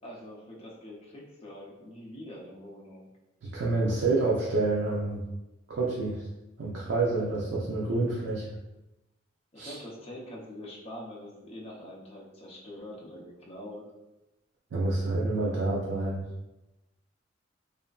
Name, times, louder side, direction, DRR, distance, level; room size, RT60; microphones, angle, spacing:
voice 1, 0.0-3.1 9.5-13.8, left 1 dB, 30° left, -4 dB, 0.6 m, -44 dB
voice 2, 3.4-5.2 5.7-6.3 6.6-8.4 9.6-9.8 14.7-16.2, right 2 dB, 75° right, -5 dB, 0.4 m, -28 dB
2.8 x 2.4 x 2.3 m, 0.99 s
head